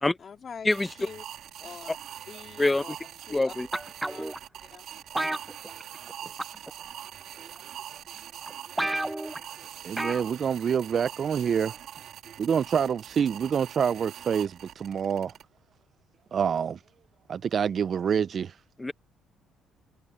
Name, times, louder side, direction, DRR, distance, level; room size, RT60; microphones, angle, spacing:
voice 1, 0.2-1.2 1.6-2.0 2.3-3.5 4.0-4.3 4.6-4.9, left 6 dB, 45° left, 2.5 m, -44 dB
sound 1, 0.7-15.4, right 10 dB, 65° right, 2.6 m, -43 dB
voice 2, 3.3-3.7 18.8-18.9, left 2 dB, 15° left, 1.4 m, -24 dB
sound 2, 3.7-4.4 5.2-6.1 6.4-6.7 7.6-7.7 8.2-8.3 8.5-8.6 8.8-9.4 10.0-10.3 10.6-10.7, right 1 dB, 10° right, 0.7 m, -31 dB
voice 3, 9.8-11.8 12.4-15.3 16.3-16.8 17.3-18.5, right 7 dB, 50° right, 0.6 m, -27 dB
supercardioid pair, 80°, 0 cm